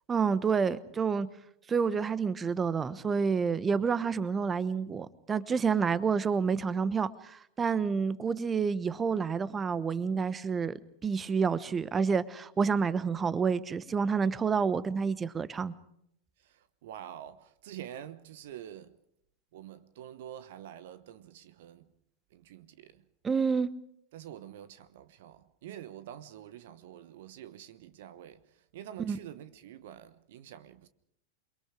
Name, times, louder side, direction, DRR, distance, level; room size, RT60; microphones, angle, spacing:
voice 1, 0.1-1.3 1.7-15.7 23.2-23.7 29.1-29.2, right 5 dB, 20° right, 1.1 m, -29 dB
voice 2, 16.4-18.9 19.5-21.9 22.3-23.0 24.1-30.9, right 11 dB, 55° right, 1.1 m, -47 dB
28.5 x 23.0 x 5.0 m
figure-of-eight pair, 90°, 0 cm